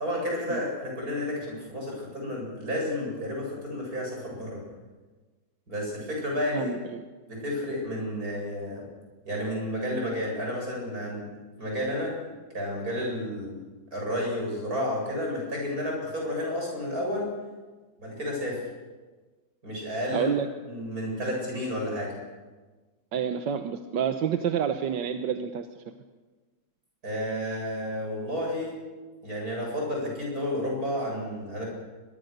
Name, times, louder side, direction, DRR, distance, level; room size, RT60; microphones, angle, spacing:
voice 1, 0.0-4.6 5.7-6.8 7.3-8.8 9.2-11.3 11.6-12.1 12.5-13.6 13.9-17.3 18.0-18.6 19.6-20.3 20.7-22.1 27.0-28.7 29.2-31.6, left 1 dB, 55° right, -1 dB, 8.5 m, -31 dB
voice 2, 6.5-7.0 20.1-20.5 23.1-25.7, right 8 dB, 85° right, 7 dB, 1.7 m, -28 dB
23.5 x 22.5 x 6.7 m, 1.3 s
omnidirectional pair, 1.9 m